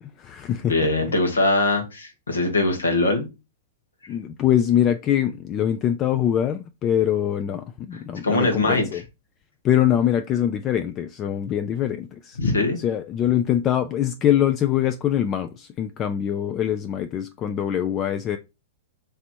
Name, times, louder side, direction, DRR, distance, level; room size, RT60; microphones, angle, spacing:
voice 1, 0.0-0.9 4.1-9.0 9.6-12.4 12.8-18.4, left 10 dB, 30° left, 0.3 m, -23 dB
voice 2, 0.7-3.3 8.2-9.0 12.4-12.8, left 2 dB, 90° left, 1.5 m, -22 dB
3.3 x 2.9 x 4.4 m
hypercardioid pair, 120°, 0 cm